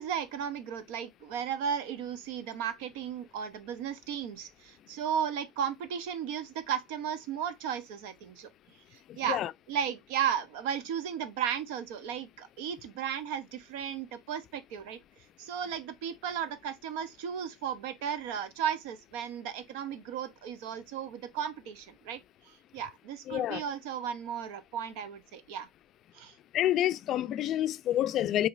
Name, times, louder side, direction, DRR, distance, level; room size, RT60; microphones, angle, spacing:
voice 1, 0.0-8.5 9.2-9.4 9.7-15.0 15.4-22.2 22.5-25.7 26.1-26.3, right 8 dB, 90° right, 0.8 m, -35 dB
voice 2, 23.3-23.6 26.5-28.5, left 12 dB, 50° left, 0.3 m, -28 dB
4.9 x 2.9 x 2.5 m
cardioid pair, 130°, 0 cm